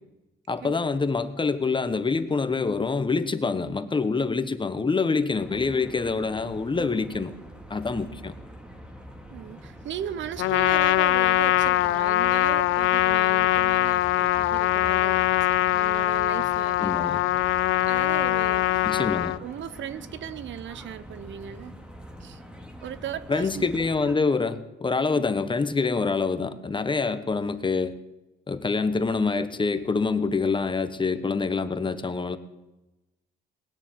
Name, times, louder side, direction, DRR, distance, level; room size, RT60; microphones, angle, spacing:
voice 1, 0.5-7.3 7.7-8.3 16.8-17.2 18.8-19.3 23.3-27.9 28.5-32.4, left 4 dB, 25° left, 1.2 m, -26 dB
sound 1, 5.4-24.2, equal, 5° right, 2.4 m, -44 dB
voice 2, 9.3-15.2 15.7-17.0 17.9-19.1 19.4-21.7 22.2-22.4 22.8-23.7 25.1-25.2, right 10 dB, 70° right, 0.9 m, -37 dB
Trumpet, 10.4-19.4, left 16 dB, 85° left, 0.5 m, -22 dB
19.5 x 7.0 x 9.3 m
cardioid pair, 90°, 20 cm